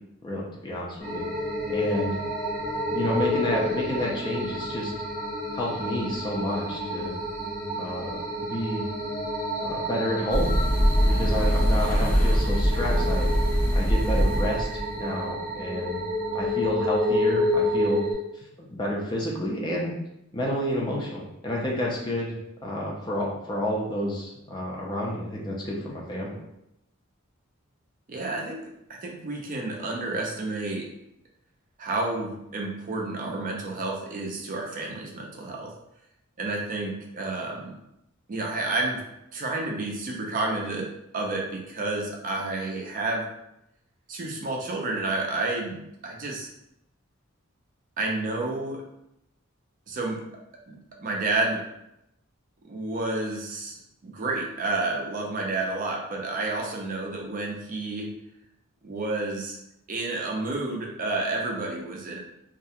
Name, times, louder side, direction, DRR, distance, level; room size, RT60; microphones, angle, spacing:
voice 1, 0.2-1.2 1.7-2.1 2.9-4.9 5.5-7.2 7.8-8.8 9.6-10.5 11.1-13.3 13.7-16.0 16.3-18.0 18.6-19.9 20.3-22.3 22.6-26.3, equal, 20° left, -2 dB, 0.4 m, -30 dB
sound 1, 1.0-18.1, left 1 dB, 40° left, 0.8 m, -29 dB
sound 2, 10.3-14.9, equal, 85° left, 0.7 m, -22 dB
voice 2, 28.1-30.9 31.8-35.7 36.4-37.8 38.3-39.0 39.3-43.3 44.1-46.5 48.0-48.8 49.9-50.2 50.7-51.6 52.6-58.1 58.8-59.6 59.9-62.2, right 2 dB, 40° right, -1 dB, 0.4 m, -30 dB
2.3 x 2.1 x 2.7 m, 0.82 s
head